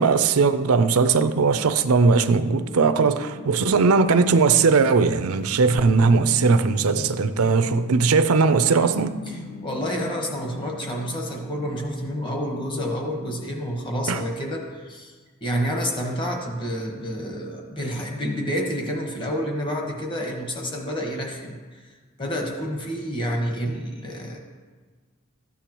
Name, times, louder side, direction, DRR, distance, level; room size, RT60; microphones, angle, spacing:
voice 1, 0.0-9.2 14.1-14.2, right 4 dB, 85° right, 0.5 m, -19 dB
sound 1, 1.7-13.7, left 1 dB, 50° left, 1.3 m, -40 dB
voice 2, 9.3-15.1 15.4-21.6 22.2-24.4, equal, 20° left, 1.2 m, -29 dB
13.5 x 8.5 x 3.0 m
head